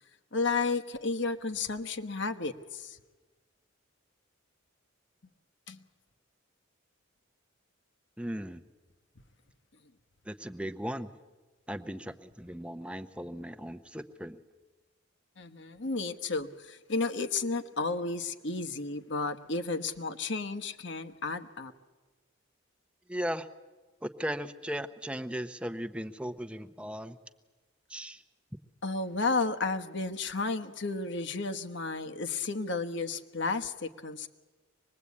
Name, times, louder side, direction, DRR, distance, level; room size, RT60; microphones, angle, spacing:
voice 1, 0.3-3.0 5.7-5.8 15.4-21.7 28.8-34.3, left 3 dB, 60° left, 7 dB, 1.2 m, -32 dB
voice 2, 8.2-8.6 10.2-11.1 11.7-14.4 23.1-23.5 24.0-27.2 27.9-28.2, equal, 5° right, 9 dB, 0.8 m, -37 dB
25.0 x 21.0 x 8.5 m, 1.3 s
head